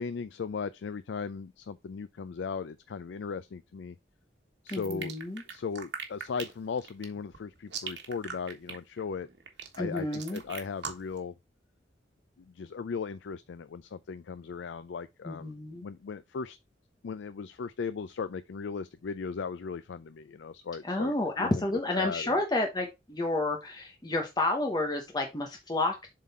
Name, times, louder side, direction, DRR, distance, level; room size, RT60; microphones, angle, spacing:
voice 1, 0.0-4.0 4.6-5.1 5.5-9.3 9.8-11.4 12.4-15.5 15.8-16.6 17.0-21.6 21.9-22.3, left 5 dB, 85° left, 0.4 m, -37 dB
voice 2, 4.7-5.4 9.8-10.4 15.2-15.9 20.8-26.1, left 2 dB, 25° left, 1.0 m, -30 dB
sound 1, 4.7-11.2, right 6 dB, 75° right, 1.4 m, -40 dB
7.4 x 3.8 x 4.2 m
head